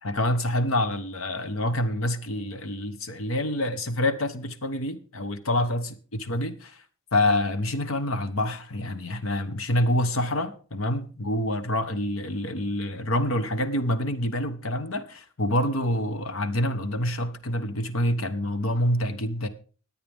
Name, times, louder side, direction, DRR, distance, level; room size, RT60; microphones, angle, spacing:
voice 1, 0.0-6.8 7.1-19.5, left 1 dB, 85° left, 1.3 m, -27 dB
21.0 x 8.6 x 3.6 m
head